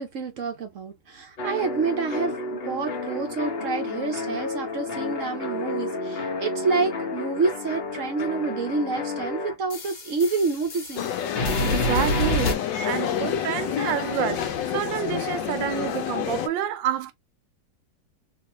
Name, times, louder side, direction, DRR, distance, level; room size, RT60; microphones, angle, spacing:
voice 1, 0.0-11.1, right 4 dB, 55° right, 0.9 m, -28 dB
sound 1, 1.4-11.1 11.4-12.5, left 2 dB, 45° left, 0.9 m, -29 dB
sound 2, 11.0-16.5, left 9 dB, 75° left, 1.3 m, -28 dB
voice 2, 11.6-17.1, right 11 dB, 80° right, 1.4 m, -29 dB
3.7 x 2.6 x 3.0 m
omnidirectional pair, 2.1 m